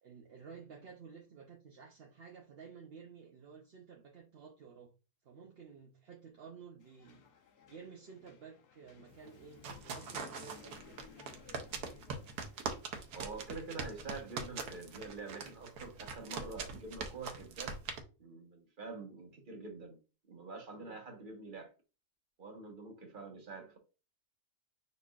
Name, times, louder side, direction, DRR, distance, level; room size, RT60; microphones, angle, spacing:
voice 1, 0.0-4.9 5.2-7.2 7.7-11.0 20.7-21.0, right 6 dB, 50° right, 0.8 m, -53 dB
sound 1, 6.8-14.9, left 6 dB, 85° left, 1.4 m, -59 dB
sound 2, 9.2-18.0, right 5 dB, 80° right, 1.3 m, -42 dB
voice 2, 13.1-17.8 18.2-20.0 20.3-21.7 22.4-23.8, right 3 dB, 35° right, 1.2 m, -46 dB
5.3 x 4.1 x 2.4 m
omnidirectional pair, 1.7 m